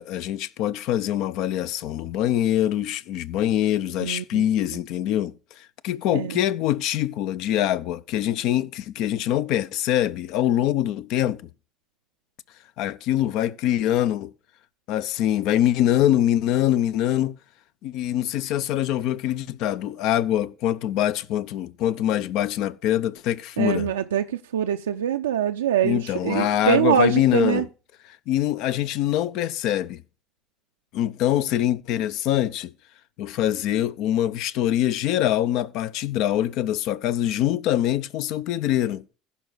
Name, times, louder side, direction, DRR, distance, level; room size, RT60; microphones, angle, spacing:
voice 1, 0.0-11.5 12.8-14.3 14.9-17.4 17.8-23.9 25.8-27.7 28.3-30.0 30.9-32.7 33.2-39.0, left 12 dB, 65° left, 0.6 m, -24 dB
voice 2, 4.0-4.4 6.1-6.4 23.6-27.6, right 9 dB, 90° right, 0.4 m, -24 dB
15.5 x 5.6 x 3.9 m
hypercardioid pair, 70°, 0 cm